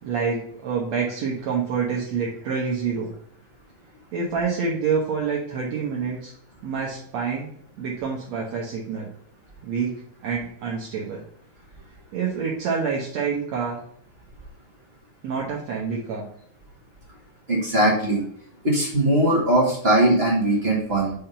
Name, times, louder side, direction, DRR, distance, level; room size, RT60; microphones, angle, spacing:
voice 1, 0.0-3.1 4.1-6.3 6.6-9.1 9.6-9.9 10.2-11.2 12.1-13.8 15.2-16.3, right 5 dB, 65° right, -3 dB, 2.0 m, -27 dB
voice 2, 17.5-18.2 18.6-21.1, right 1 dB, 35° right, -4 dB, 1.0 m, -20 dB
5.8 x 3.5 x 5.5 m, 0.64 s
omnidirectional pair, 3.5 m